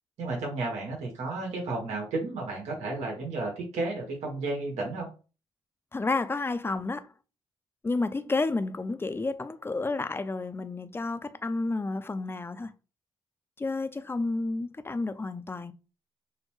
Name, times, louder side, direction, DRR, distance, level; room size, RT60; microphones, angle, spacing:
voice 1, 0.2-5.1, right 2 dB, 85° right, 1.5 m, -32 dB
voice 2, 5.9-7.0 7.8-12.7 13.6-15.7, left 3 dB, 20° left, 0.5 m, -31 dB
6.5 x 2.2 x 3.1 m
cardioid pair, 70°, 11 cm